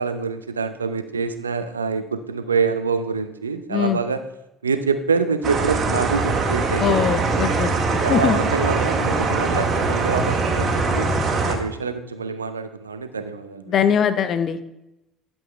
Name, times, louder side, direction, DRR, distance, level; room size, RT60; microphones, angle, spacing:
voice 1, 0.0-4.2 4.6-7.0 8.0-11.1 11.4-13.7, right 5 dB, 90° right, 10 dB, 0.6 m, -25 dB
sound 1, 5.4-11.5, right 3 dB, 45° right, 1.8 m, -22 dB
voice 2, 6.8-7.7 8.1-8.4 13.7-14.6, left 8 dB, 50° left, 11 dB, 0.8 m, -21 dB
11.0 x 7.5 x 3.3 m, 0.88 s
hypercardioid pair, 60°, 0 cm